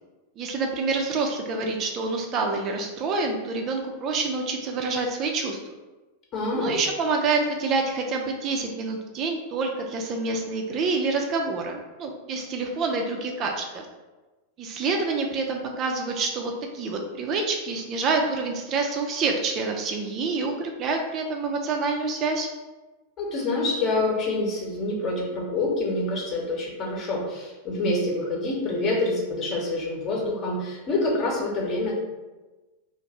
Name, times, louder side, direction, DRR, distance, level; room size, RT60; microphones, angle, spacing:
voice 1, 0.4-5.6 6.5-13.8 14.6-22.5, right 3 dB, 35° right, 2 dB, 0.4 m, -27 dB
voice 2, 6.3-6.8 23.2-32.0, left 2 dB, 35° left, -2 dB, 0.9 m, -26 dB
2.6 x 2.5 x 4.2 m, 1.2 s
figure-of-eight pair, 90°, 0 cm